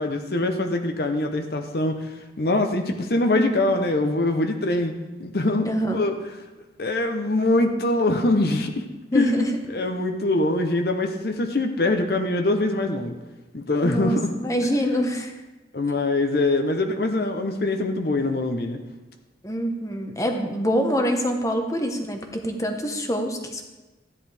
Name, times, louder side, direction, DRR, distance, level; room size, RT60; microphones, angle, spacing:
voice 1, 0.0-6.1 6.8-8.9 9.1-13.1 13.5-14.3 14.6-14.8 15.7-18.8, left 2 dB, 60° left, 5 dB, 0.8 m, -23 dB
voice 2, 5.7-6.1 9.1-9.6 13.8-15.3 19.4-23.6, equal, 20° left, 3 dB, 1.0 m, -25 dB
13.0 x 10.0 x 3.4 m, 1.1 s
head